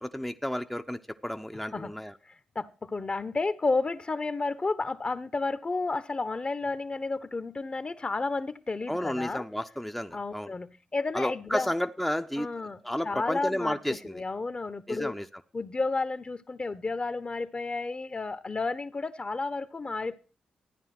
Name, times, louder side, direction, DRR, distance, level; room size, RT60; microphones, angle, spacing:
voice 1, 0.0-2.1 8.9-10.5 11.1-12.5 12.8-14.2 14.9-15.3, equal, 5° left, 0.9 m, -32 dB
voice 2, 2.2-9.4 10.1-11.7 12.4-15.1 15.5-20.2, left 3 dB, 35° left, 1.2 m, -32 dB
14.0 x 9.7 x 6.1 m
supercardioid pair, 50°, 3 cm